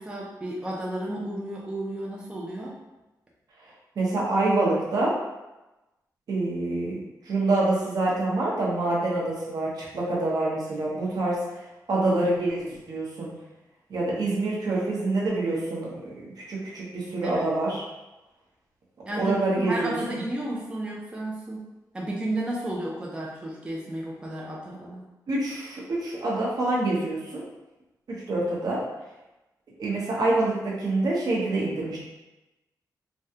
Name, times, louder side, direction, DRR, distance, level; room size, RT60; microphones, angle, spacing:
voice 1, 0.0-2.8 17.2-17.5 19.0-21.7 21.9-25.0, right 1 dB, 15° right, -4 dB, 0.4 m, -32 dB
voice 2, 4.0-5.1 6.3-11.4 11.9-13.3 13.9-17.8 19.2-20.2 25.3-27.4 28.3-28.8 29.8-32.0, right 2 dB, 65° right, -5 dB, 0.9 m, -26 dB
3.4 x 2.3 x 2.7 m, 1.0 s
wide cardioid pair, 145°, 7 cm